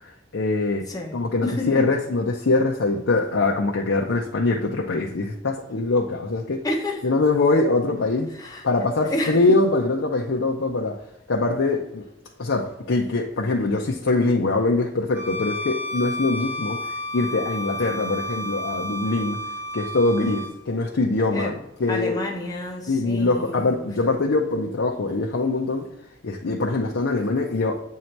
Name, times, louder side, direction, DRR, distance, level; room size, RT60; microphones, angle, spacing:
voice 1, 0.3-0.9 1.1-6.6 7.0-8.3 8.6-11.0 11.3-12.0 12.4-16.8 17.1-19.4 19.7-20.4 20.7-21.5 21.8-22.2 22.9-25.9 26.2-27.8, left 3 dB, 85° left, 0.6 m, -23 dB
voice 2, 0.9-1.8 5.7-5.8 6.6-7.0 8.4-9.4 20.2-20.4 21.3-21.6 21.9-23.9, left 1 dB, 20° left, 1.0 m, -30 dB
Bowed string instrument, 15.1-20.6, left 1 dB, 10° right, 1.0 m, -31 dB
7.6 x 2.8 x 4.5 m
head